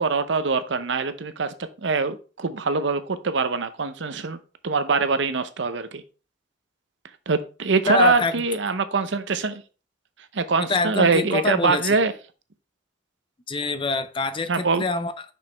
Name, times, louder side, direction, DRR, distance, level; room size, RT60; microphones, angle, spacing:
voice 1, 0.0-6.0 7.3-9.6 10.3-12.1 14.5-14.8, right 4 dB, 65° right, 0.7 m, -23 dB
voice 2, 7.9-8.4 10.7-12.0 13.5-15.3, left 3 dB, 25° left, 0.5 m, -25 dB
6.2 x 5.9 x 3.4 m
head